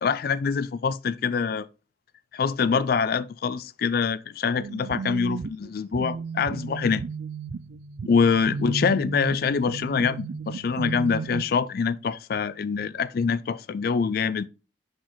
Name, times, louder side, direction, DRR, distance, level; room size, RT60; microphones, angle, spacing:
voice 1, 0.0-1.7 2.3-7.0 8.0-14.5, left 5 dB, 55° left, 0.4 m, -25 dB
sound 1, 4.6-11.4, right 4 dB, 65° right, 0.3 m, -34 dB
6.2 x 4.0 x 4.5 m
head